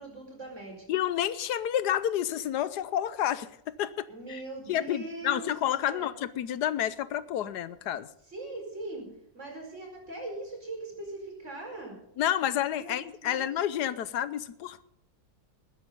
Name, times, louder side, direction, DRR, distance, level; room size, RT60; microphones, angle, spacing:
voice 1, 0.0-0.8 4.1-5.6 5.9-6.1 8.3-9.1 9.3-12.0 12.7-13.5, right 2 dB, 45° right, 1 dB, 5.2 m, -41 dB
voice 2, 0.9-3.5 3.8-4.4 4.7-8.1 12.2-14.9, left 11 dB, 85° left, 15 dB, 1.3 m, -29 dB
20.0 x 10.0 x 5.3 m, 0.75 s
omnidirectional pair, 1.7 m